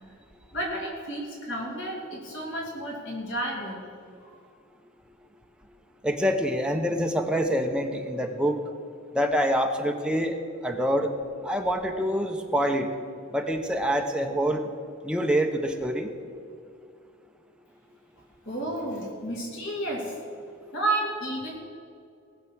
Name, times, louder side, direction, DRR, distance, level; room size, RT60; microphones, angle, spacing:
voice 1, 0.5-3.9 4.2-4.4 18.5-20.1 20.7-21.6, right 1 dB, 60° left, -2 dB, 2.8 m, -31 dB
voice 2, 6.0-8.6 9.1-10.3 10.6-11.1 11.4-12.9 13.3-14.7 15.0-16.1, equal, 5° right, 3 dB, 1.0 m, -26 dB
19.0 x 7.1 x 6.2 m, 2.3 s
head